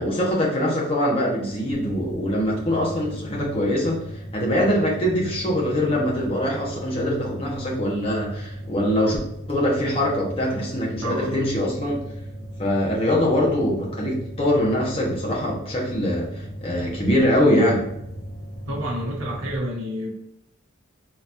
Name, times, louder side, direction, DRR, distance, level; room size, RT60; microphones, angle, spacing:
voice 1, 0.0-4.0 4.3-9.2 9.5-12.0 12.6-17.8, left 1 dB, 25° left, -3 dB, 1.0 m, -23 dB
sound 1, 1.7-19.6, equal, 50° left, 0.5 m, -37 dB
voice 2, 11.0-11.5 18.7-20.1, equal, 80° right, -2 dB, 0.9 m, -29 dB
3.9 x 2.9 x 2.5 m, 0.78 s
head